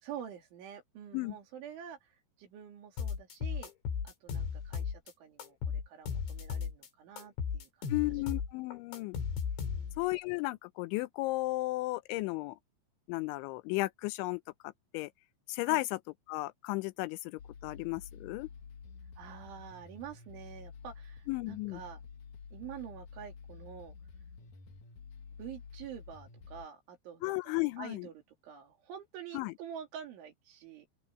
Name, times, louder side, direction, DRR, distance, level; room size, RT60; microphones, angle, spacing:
voice 1, 0.0-3.7 4.0-7.9 9.6-10.0 15.7-15.8 19.2-22.0 22.5-24.0 25.4-28.1 28.4-30.9, right 9 dB, 80° right, 5.7 m, -47 dB
sound 1, 3.0-5.1 5.4-6.9 7.2-10.1, left 6 dB, 70° left, 5.4 m, -36 dB
voice 2, 7.9-9.2 10.0-12.6 13.1-15.1 15.5-16.0 16.3-18.5 21.3-21.8 27.2-28.1 29.3-29.5, left 21 dB, 85° left, 3.0 m, -34 dB
sound 2, 17.4-26.7, left 5 dB, 55° left, 2.7 m, -50 dB
open air
omnidirectional pair, 5.4 m